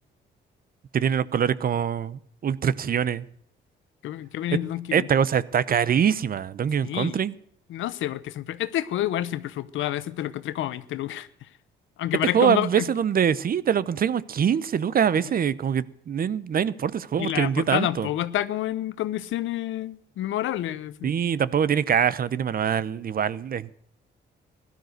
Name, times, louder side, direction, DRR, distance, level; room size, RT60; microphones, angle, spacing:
voice 1, 0.9-3.2 4.9-7.3 12.3-18.1 21.0-23.8, right 8 dB, 45° right, 0.8 m, -24 dB
voice 2, 4.0-5.1 6.8-7.2 7.7-11.5 12.0-12.9 17.2-21.1, left 13 dB, 80° left, 0.9 m, -29 dB
16.5 x 12.5 x 6.6 m
cardioid pair, 90°, 20 cm